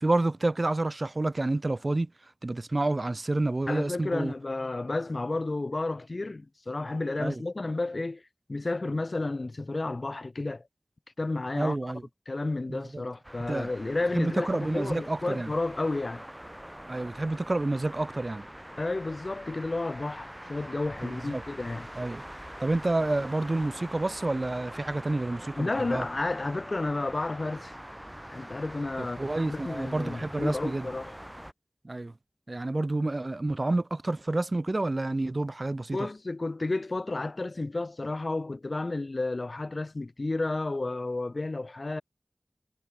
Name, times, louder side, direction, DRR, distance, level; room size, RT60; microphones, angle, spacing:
voice 1, 0.0-2.1 2.4-4.3 7.2-7.4 11.6-12.0 12.7-13.0 13.5-13.7 14.1-15.5 16.9-18.5 21.0-21.4 22.0-22.2 22.6-26.1 29.0-30.9 31.8-32.1 32.5-36.1, right 2 dB, 50° right, 0.5 m, -29 dB
voice 2, 3.7-8.2 8.5-10.6 11.2-11.9 12.3-16.2 18.8-21.9 25.6-27.7 28.3-29.2 29.4-31.2 35.9-42.0, left 2 dB, 60° left, 1.7 m, -31 dB
sound 1, 13.2-31.5, equal, 10° right, 2.2 m, -44 dB
wide cardioid pair, 45°, 0 cm